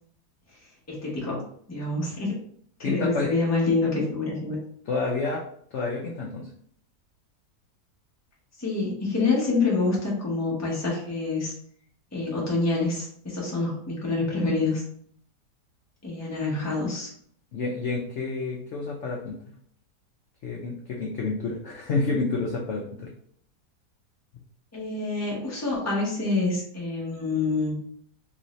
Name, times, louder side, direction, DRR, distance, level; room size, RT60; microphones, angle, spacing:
voice 1, 0.9-1.4 1.7-2.3 2.8-4.6 8.6-11.5 12.1-14.8 16.0-17.1 24.7-27.7, left 3 dB, 15° left, -4 dB, 0.7 m, -26 dB
voice 2, 2.8-3.3 4.9-5.4 5.7-6.5 17.5-19.3 20.4-23.1, left 3 dB, 65° left, -1 dB, 0.7 m, -29 dB
3.0 x 2.7 x 3.1 m, 0.62 s
omnidirectional pair, 1.7 m